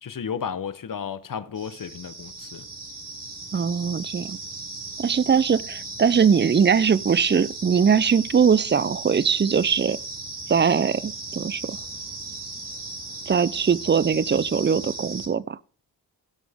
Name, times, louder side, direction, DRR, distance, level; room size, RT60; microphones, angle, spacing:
voice 1, 0.0-2.6, left 7 dB, 50° left, 1.1 m, -33 dB
sound 1, 1.6-15.3, right 3 dB, 50° right, 4.7 m, -37 dB
voice 2, 3.5-4.4 5.0-10.0 10.5-11.8 13.3-15.6, right 6 dB, 25° right, 0.5 m, -21 dB
16.0 x 6.2 x 3.6 m
cardioid pair, 50°, 42 cm